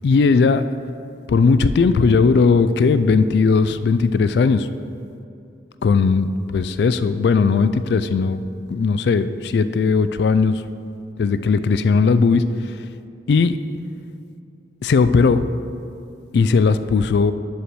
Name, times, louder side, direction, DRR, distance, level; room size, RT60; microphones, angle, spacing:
voice 1, 0.0-0.6 1.3-4.7 5.8-8.4 8.7-10.6 11.2-12.4 13.3-13.6 14.8-15.4 16.3-17.3, left 4 dB, 65° left, 13 dB, 0.3 m, -17 dB
5.7 x 5.7 x 6.1 m, 2.6 s
head